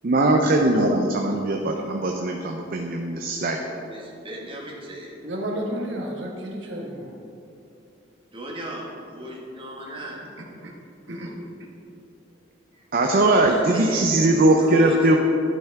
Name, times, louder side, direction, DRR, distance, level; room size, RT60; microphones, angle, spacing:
voice 1, 0.0-3.6 12.9-15.2, right 2 dB, 50° right, 2 dB, 0.5 m, -20 dB
voice 2, 3.5-5.1 8.3-10.2 12.7-12.8 13.5-14.1 14.5-15.2, right 1 dB, 30° right, -3 dB, 1.4 m, -36 dB
voice 3, 5.2-7.1 10.2-10.7 11.1-11.3, equal, 70° right, -1 dB, 1.2 m, -32 dB
11.5 x 5.7 x 3.5 m, 2.6 s
head